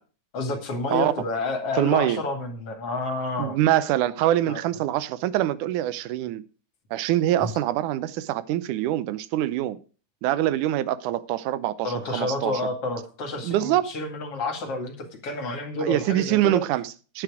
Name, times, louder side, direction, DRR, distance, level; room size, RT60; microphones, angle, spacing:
voice 1, 0.3-3.6 4.5-4.6 7.4-7.5 11.8-16.6, left 2 dB, 45° left, 3.0 m, -30 dB
voice 2, 1.8-2.2 3.4-6.4 6.9-9.8 10.2-12.5 13.4-13.8 15.8-17.2, right 13 dB, 75° right, 2.1 m, -24 dB
9.9 x 9.5 x 4.9 m
omnidirectional pair, 3.8 m